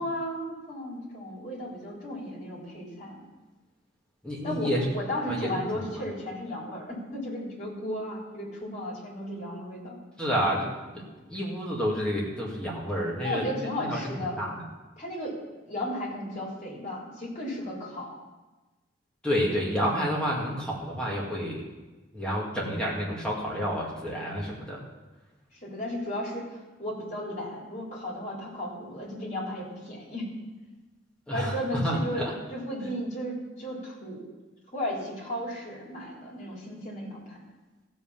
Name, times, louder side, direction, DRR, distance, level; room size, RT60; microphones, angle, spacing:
voice 1, 0.0-3.2 4.4-10.0 13.2-14.4 15.0-15.4 15.7-18.2 25.6-30.3 31.3-32.2 32.5-34.3 34.7-37.4, left 1 dB, 40° left, -3 dB, 3.6 m, -34 dB
voice 2, 4.2-4.9 5.3-5.8 10.2-10.7 10.9-14.6 19.2-21.6 22.1-24.8 31.3-32.3 32.8-32.9, equal, 5° left, -5 dB, 2.0 m, -30 dB
15.5 x 5.5 x 7.3 m, 1.2 s
head